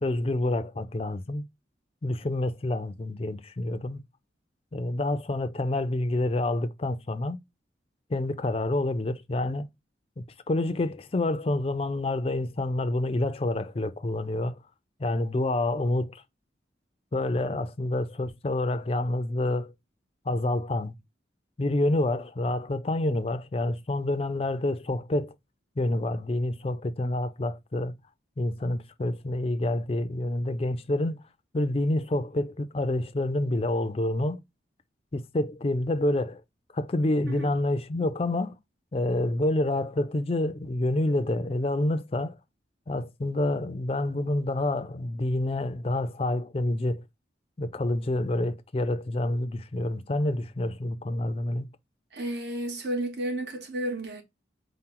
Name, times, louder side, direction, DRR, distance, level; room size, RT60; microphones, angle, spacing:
voice 1, 0.0-1.4 2.0-4.0 4.7-7.4 8.1-9.7 10.2-14.6 15.0-16.2 17.1-19.7 20.3-21.0 21.6-25.3 25.8-27.9 28.4-31.2 31.5-34.4 35.1-36.4 36.7-38.6 38.9-42.4 42.9-47.0 47.6-51.7, left 1 dB, 30° left, 0.4 m, -28 dB
voice 2, 52.1-54.2, right 1 dB, 65° right, 1.0 m, -32 dB
4.3 x 2.1 x 3.8 m
head